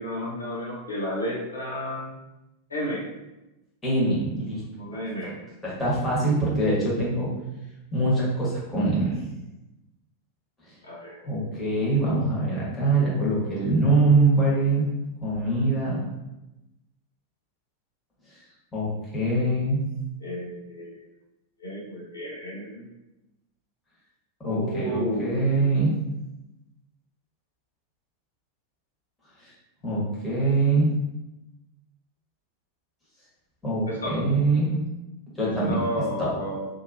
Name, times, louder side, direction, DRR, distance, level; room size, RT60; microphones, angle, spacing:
voice 1, 0.0-2.1 2.7-3.1 4.8-5.3 10.8-11.2 20.2-21.0 21.6-22.8 24.4-25.6 33.9-34.2 35.7-36.7, equal, 75° left, -4 dB, 0.6 m, -32 dB
voice 2, 3.8-4.6 5.2-5.3 5.6-7.3 7.9-9.3 11.2-14.8 15.2-16.0 18.7-19.8 24.4-25.9 29.4-29.5 29.8-30.9 33.6-34.8 35.4-35.7 36.2-36.3, right 2 dB, 15° left, -7 dB, 1.2 m, -23 dB
2.6 x 2.5 x 2.6 m, 0.97 s
figure-of-eight pair, 90°, 0 cm